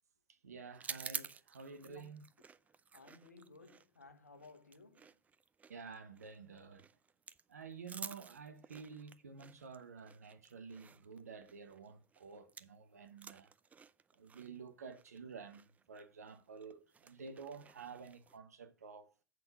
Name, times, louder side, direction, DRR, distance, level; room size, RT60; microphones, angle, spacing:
voice 1, 0.4-2.2 5.7-6.9 7.5-13.5 14.2-19.1, right 5 dB, 80° right, 1.3 m, -51 dB
sound 1, 0.7-12.8 13.1-18.4, right 6 dB, 20° right, 0.5 m, -51 dB
voice 2, 1.9-2.2 2.9-5.2, left 3 dB, 90° left, 1.2 m, -58 dB
8.0 x 6.0 x 5.5 m
hypercardioid pair, 95°, 8 cm